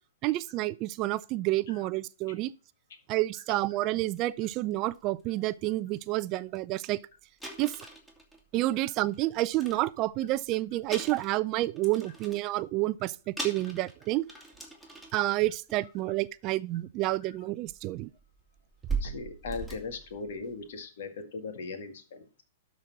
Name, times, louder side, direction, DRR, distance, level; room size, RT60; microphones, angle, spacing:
voice 1, 0.2-2.5 3.1-7.0 7.6-7.7 8.5-13.2 13.4-14.2 15.1-18.1, right 17 dB, 35° right, 0.4 m, -29 dB
sound 1, 4.2-4.3 4.7-5.0 5.6-5.7 6.0-6.1 6.5-6.6 6.8-6.9 7.4-9.1 9.5-10.4 10.8-12.6 13.0-13.1 13.4-15.4 15.7-16.0 17.1-17.2 17.7-20.7, right 4 dB, 5° left, 2.3 m, -40 dB
voice 2, 19.0-22.4, left 4 dB, 60° left, 2.0 m, -39 dB
12.5 x 4.2 x 6.0 m
figure-of-eight pair, 110°, 0 cm